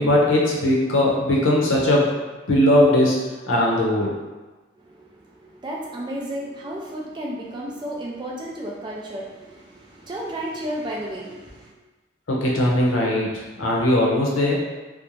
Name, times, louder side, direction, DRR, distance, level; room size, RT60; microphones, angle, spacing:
voice 1, 0.0-2.1 2.5-3.2 3.5-4.1 12.3-13.3 13.6-14.5, left 1 dB, 80° left, -3 dB, 0.6 m, -19 dB
voice 2, 4.8-11.7, right 1 dB, 20° right, -3 dB, 0.3 m, -33 dB
2.4 x 2.1 x 3.0 m, 1.2 s
head